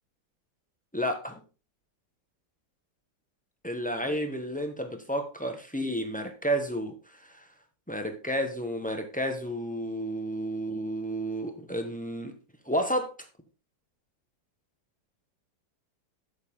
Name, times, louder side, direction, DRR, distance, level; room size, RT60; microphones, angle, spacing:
voice 1, 0.9-1.4 3.6-6.9 7.2-7.4 7.9-12.4 12.7-13.2, equal, 5° left, 1.0 m, -31 dB
8.6 x 7.8 x 3.7 m
omnidirectional pair, 2.1 m